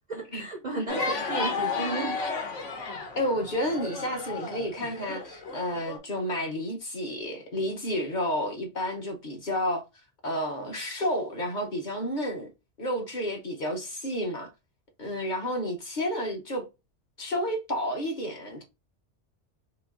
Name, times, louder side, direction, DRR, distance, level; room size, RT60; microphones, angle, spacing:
voice 1, 0.1-2.2, right 2 dB, 50° right, 0.5 m, -34 dB
sound 1, 0.9-6.0, left 3 dB, 85° left, 1.3 m, -33 dB
voice 2, 3.2-9.8 10.2-12.5 12.8-14.5 15.0-16.7 17.2-18.6, equal, 45° left, 0.9 m, -31 dB
3.0 x 2.7 x 3.6 m
omnidirectional pair, 1.2 m